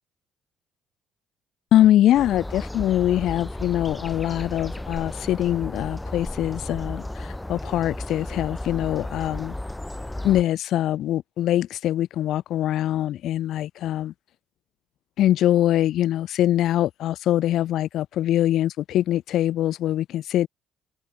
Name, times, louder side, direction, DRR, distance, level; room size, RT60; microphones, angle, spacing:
voice 1, 1.7-9.5 10.2-14.1 15.2-20.5, left 12 dB, 70° left, 0.3 m, -23 dB
sound 1, 2.1-10.4, left 1 dB, 10° left, 0.8 m, -34 dB
cardioid pair, 100°, 0 cm